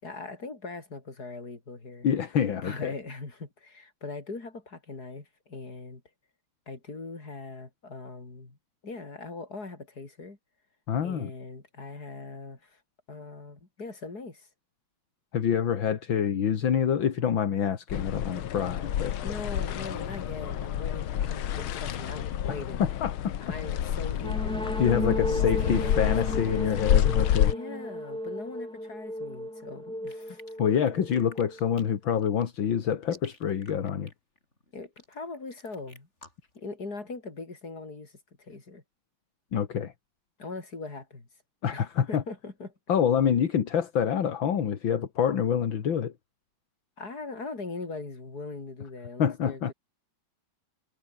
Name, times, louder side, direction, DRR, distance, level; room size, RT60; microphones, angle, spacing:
voice 1, 0.0-2.1 2.6-6.0 6.7-8.6 8.8-10.4 11.0-12.8 13.1-14.5 19.2-22.9 23.4-24.6 25.1-26.6 27.5-30.4 34.7-36.1 36.5-38.8 40.4-41.3 41.7-42.7 47.0-49.7, left 3 dB, 50° left, 4.9 m, -40 dB
voice 2, 2.0-2.9 10.9-11.3 15.3-19.1 22.5-23.3 24.8-27.5 30.6-34.1 39.5-39.9 41.6-42.2 42.9-46.1 49.2-49.7, left 8 dB, 70° left, 2.5 m, -26 dB
sound 1, 17.9-27.5, left 11 dB, 85° left, 2.0 m, -29 dB
sound 2, 24.2-31.9, equal, ahead, 3.7 m, -35 dB
sound 3, 30.0-36.6, left 1 dB, 35° left, 7.0 m, -53 dB
omnidirectional pair, 2.2 m